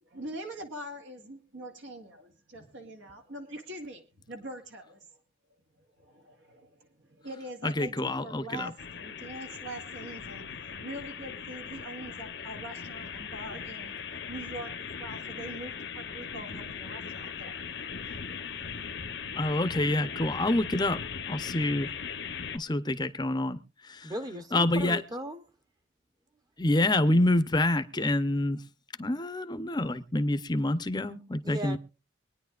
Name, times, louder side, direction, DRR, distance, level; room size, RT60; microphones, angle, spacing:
voice 1, 0.0-5.2 5.7-18.9, right 1 dB, 80° right, 2.1 m, -44 dB
voice 2, 7.6-8.7 19.4-21.9 22.5-23.6 23.9-24.1 24.5-25.0 26.6-28.6 29.0-31.8, left 1 dB, 20° left, 0.7 m, -27 dB
sound 1, 8.8-22.6, left 6 dB, 65° left, 0.9 m, -39 dB
voice 3, 24.0-25.4 31.4-31.8, right 1 dB, 20° right, 0.9 m, -37 dB
24.5 x 9.9 x 2.4 m
head